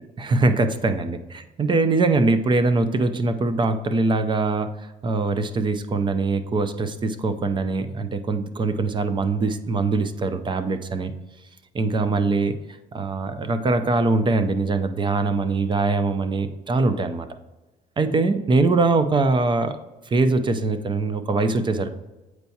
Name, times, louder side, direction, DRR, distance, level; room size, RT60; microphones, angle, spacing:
voice 1, 0.2-1.2 1.6-4.7 5.0-11.1 11.7-12.6 12.9-17.3 18.0-19.8 20.1-21.9, right 3 dB, 30° right, 10 dB, 0.6 m, -22 dB
8.1 x 4.6 x 2.8 m, 1.1 s
cardioid pair, 110°, 17 cm